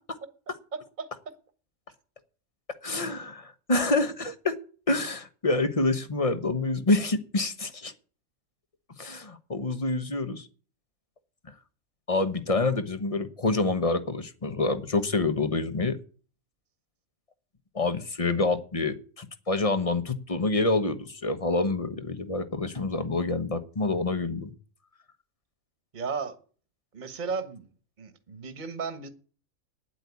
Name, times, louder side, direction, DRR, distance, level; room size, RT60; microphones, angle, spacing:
voice 1, 0.7-1.3 25.9-26.4 26.9-27.7 28.0-29.1, right 5 dB, 35° right, 1.4 m, -35 dB
voice 2, 2.8-4.5 4.9-7.9 9.0-10.5 12.1-16.0 17.7-24.5, left 3 dB, 25° left, 1.1 m, -27 dB
10.0 x 8.6 x 8.3 m
omnidirectional pair, 1.5 m